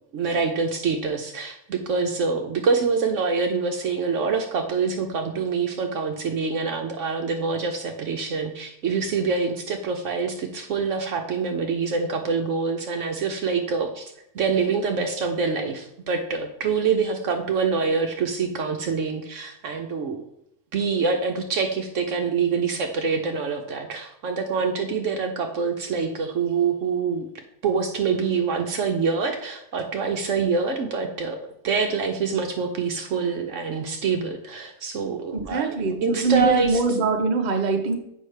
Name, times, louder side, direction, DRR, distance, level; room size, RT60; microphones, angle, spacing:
voice 1, 0.1-14.1 14.3-20.2 20.7-27.3 27.6-31.4 31.6-36.8, right 5 dB, 65° right, 4 dB, 1.0 m, -25 dB
voice 2, 35.3-38.0, right 3 dB, 35° right, 3 dB, 0.8 m, -23 dB
8.0 x 5.5 x 3.3 m, 0.77 s
omnidirectional pair, 1.5 m